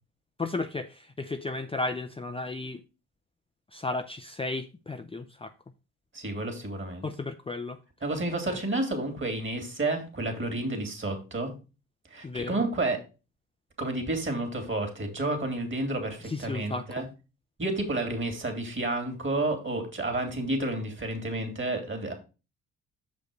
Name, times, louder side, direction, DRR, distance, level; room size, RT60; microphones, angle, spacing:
voice 1, 0.4-2.8 3.7-5.5 7.0-7.8 8.5-8.6 12.2-12.6 16.2-17.0, left 3 dB, 15° left, 7 dB, 0.6 m, -34 dB
voice 2, 6.1-7.1 8.0-11.5 12.1-13.0 13.8-17.1 17.6-22.1, right 2 dB, 35° right, 5 dB, 2.8 m, -30 dB
6.5 x 5.2 x 5.0 m, 0.31 s
supercardioid pair, 65°, 36 cm